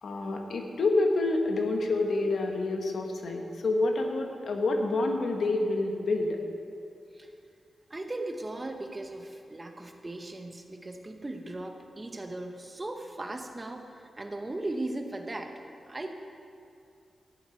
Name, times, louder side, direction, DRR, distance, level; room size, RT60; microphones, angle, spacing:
voice 1, 0.0-6.4, left 2 dB, 70° left, 3 dB, 1.3 m, -28 dB
voice 2, 7.9-15.6 15.9-16.1, right 2 dB, 25° right, 5 dB, 1.0 m, -38 dB
13.5 x 10.5 x 4.6 m, 2.5 s
cardioid pair, 85°, 0 cm